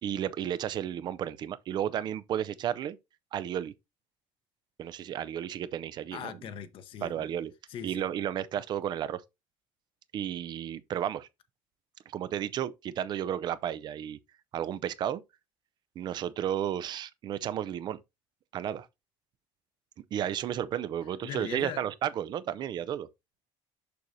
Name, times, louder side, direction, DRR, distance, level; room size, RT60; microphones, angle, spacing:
voice 1, 0.0-3.0 3.3-3.7 4.8-6.3 7.0-7.5 7.8-9.2 10.1-11.3 12.1-14.2 14.5-15.2 16.0-18.0 18.5-18.9 20.1-23.1, right 10 dB, 40° right, 0.5 m, -33 dB
voice 2, 6.1-7.3 7.7-8.1 21.2-21.8, left 9 dB, 55° left, 0.8 m, -40 dB
6.8 x 6.3 x 2.6 m
cardioid pair, 165°, 11 cm